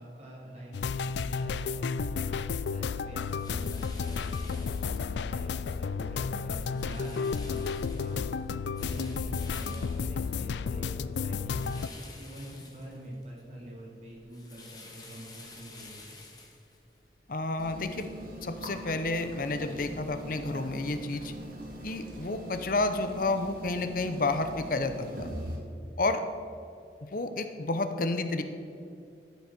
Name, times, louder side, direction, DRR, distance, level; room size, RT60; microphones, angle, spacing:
voice 1, 0.0-16.1, right 1 dB, 40° right, -4 dB, 3.2 m, -45 dB
sound 1, 0.7-11.9, left 5 dB, 80° left, 0.4 m, -32 dB
sound 2, 3.2-5.4 5.9-6.2 6.6-10.9 11.6-13.4 13.8-18.0, left 3 dB, 20° left, 1.5 m, -51 dB
voice 2, 17.3-18.1 18.4-21.3 21.8-25.3 26.0-26.2 27.1-28.4, left 2 dB, 50° left, 8 dB, 0.7 m, -30 dB
sound 3, 17.6-25.6, equal, 55° right, 2.4 m, -42 dB
12.5 x 7.3 x 5.9 m, 2.6 s
head